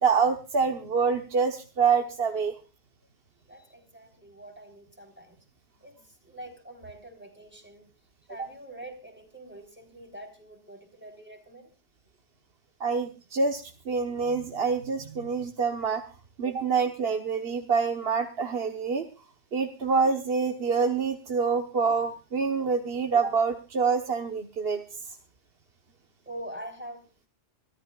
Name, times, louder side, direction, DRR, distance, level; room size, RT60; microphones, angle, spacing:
voice 1, 0.0-2.5 8.4-8.5 12.8-16.0 16.4-19.1 19.5-25.2, right 5 dB, 70° right, 5 dB, 1.4 m, -26 dB
voice 2, 3.5-5.4 5.8-7.9 8.3-11.7 26.3-27.1, right 1 dB, 10° right, 4 dB, 3.7 m, -44 dB
25.0 x 13.5 x 2.4 m, 0.33 s
omnidirectional pair, 1.0 m